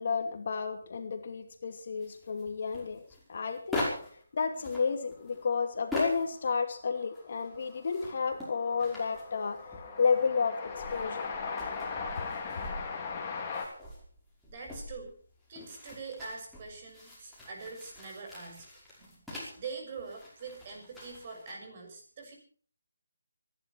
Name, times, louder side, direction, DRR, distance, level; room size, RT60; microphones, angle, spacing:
voice 1, 0.0-3.0 3.3-3.8 4.3-9.6 10.0-11.3, left 5 dB, 50° left, 5 dB, 2.6 m, -31 dB
sound 1, 2.0-4.2 4.5-6.5 6.8-10.2 10.7-19.7 20.0-21.5, left 1 dB, ahead, 5.4 m, -43 dB
Train, 6.2-6.3 6.5-13.7, left 5 dB, 20° left, 3.5 m, -39 dB
voice 2, 14.5-15.2 15.5-22.3, right 4 dB, 35° right, 2 dB, 6.6 m, -44 dB
25.5 x 11.0 x 4.6 m, 0.43 s
figure-of-eight pair, 160°, 0 cm